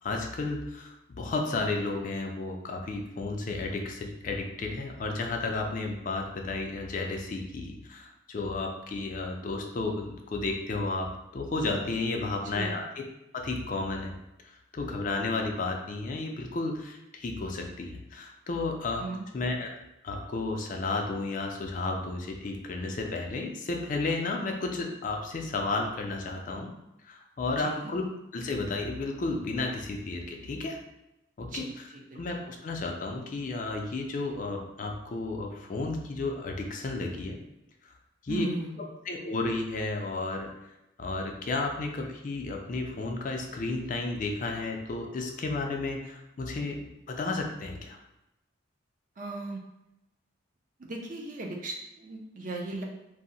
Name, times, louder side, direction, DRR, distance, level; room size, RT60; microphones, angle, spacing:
voice 1, 0.0-12.9 13.3-14.1 14.4-19.1 19.3-19.7 20.0-26.7 27.0-28.1 28.3-30.8 31.4-31.9 32.2-37.4 38.2-38.5 39.1-40.5 41.0-48.0, left 3 dB, 40° left, 2 dB, 0.3 m, -32 dB
voice 2, 12.4-12.8 19.0-19.2 27.6-27.9 31.4-32.2 38.3-38.9 49.2-49.6 50.8-52.8, right 2 dB, 40° right, 1 dB, 0.4 m, -37 dB
2.6 x 2.0 x 3.8 m, 0.91 s
head